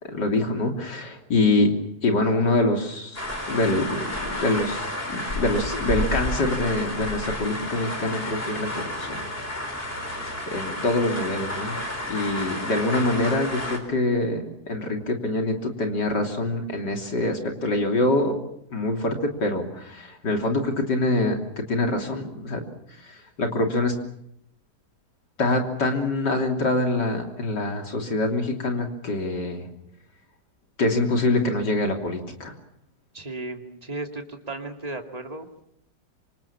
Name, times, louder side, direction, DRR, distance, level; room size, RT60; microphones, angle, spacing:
voice 1, 0.0-1.7 2.0-3.2 3.5-9.2 10.5-11.8 12.1-18.4 18.7-21.4 21.7-22.6 23.0-23.9 25.4-29.7 30.8-32.5, left 2 dB, 80° left, 3 dB, 3.8 m, -25 dB
sound 1, 3.2-13.8, left 1 dB, 35° left, 4.5 m, -31 dB
voice 2, 33.1-35.6, right 2 dB, 20° right, 4 dB, 2.5 m, -35 dB
27.5 x 25.5 x 7.3 m, 0.75 s
omnidirectional pair, 1.8 m